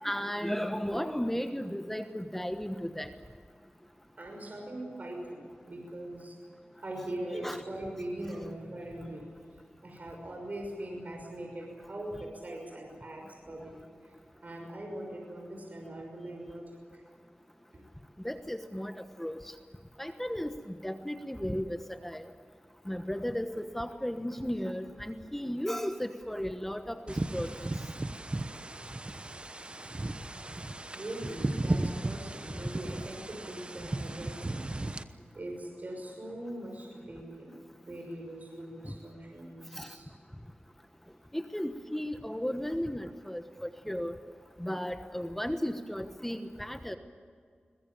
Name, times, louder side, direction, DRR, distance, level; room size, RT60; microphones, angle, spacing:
voice 1, 0.0-3.1 7.4-7.6 18.2-19.5 20.0-20.5 20.8-22.3 22.9-27.5 38.8-38.9 39.8-39.9 41.3-44.1 44.6-47.0, equal, 5° left, 8 dB, 1.2 m, -35 dB
voice 2, 4.2-6.4 6.8-14.1 14.4-17.0 17.7-17.8 30.9-37.6 37.8-40.1, right 1 dB, 50° right, 1 dB, 6.0 m, -41 dB
sound 1, 27.1-35.0, right 2 dB, 30° right, 1.0 m, -35 dB
22.0 x 20.5 x 8.8 m, 2.1 s
wide cardioid pair, 65°, 3 cm